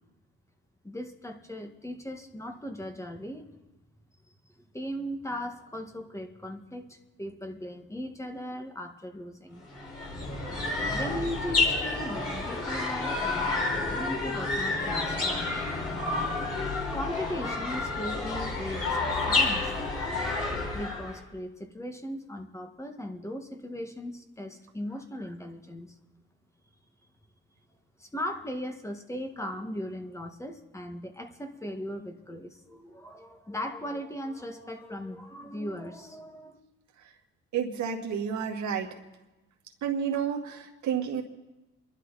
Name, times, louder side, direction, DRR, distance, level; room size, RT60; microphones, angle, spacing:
voice 1, 0.8-3.4 4.7-9.6 10.9-15.7 16.9-19.7 20.7-25.9 28.0-36.6, equal, 10° left, 5 dB, 1.8 m, -38 dB
sound 1, 9.6-21.2, left 3 dB, 50° left, 6.3 m, -30 dB
voice 2, 37.5-38.9 39.8-41.2, right 7 dB, 70° right, 1 dB, 2.2 m, -30 dB
28.5 x 11.5 x 4.2 m, 1.1 s
cardioid pair, 90°, 30 cm